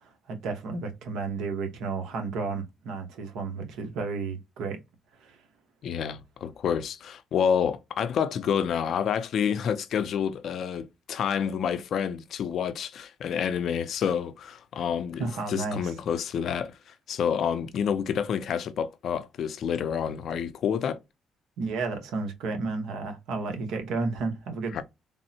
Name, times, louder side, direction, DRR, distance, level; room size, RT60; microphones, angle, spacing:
voice 1, 0.0-4.8 5.2-5.4 15.2-15.8 21.6-24.8, right 4 dB, 85° right, 0.9 m, -32 dB
voice 2, 5.8-21.0 24.7-24.8, left 7 dB, 60° left, 0.4 m, -28 dB
3.5 x 2.0 x 2.7 m
cardioid pair, 110°, 0 cm